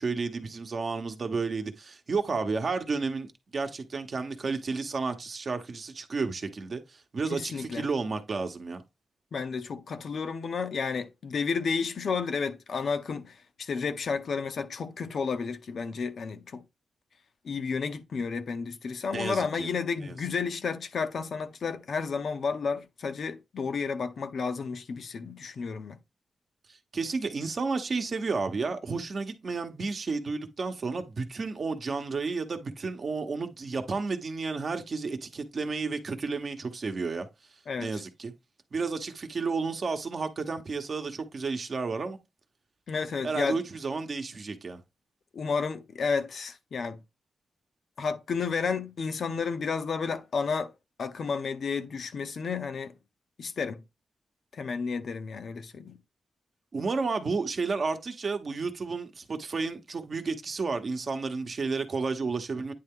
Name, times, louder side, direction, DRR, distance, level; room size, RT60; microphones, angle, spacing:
voice 1, 0.0-8.8 19.1-19.7 20.0-20.1 26.7-37.3 37.8-38.3 38.7-42.2 43.2-44.8 56.7-62.7, right 4 dB, 45° right, 0.9 m, -32 dB
voice 2, 7.3-7.8 9.3-16.6 17.4-26.0 37.7-38.0 42.9-43.6 45.3-47.0 48.0-50.7 51.0-52.9 53.4-53.8 54.5-56.0, left 5 dB, 60° left, 0.6 m, -32 dB
9.3 x 3.3 x 3.7 m
wide cardioid pair, 150°, 0 cm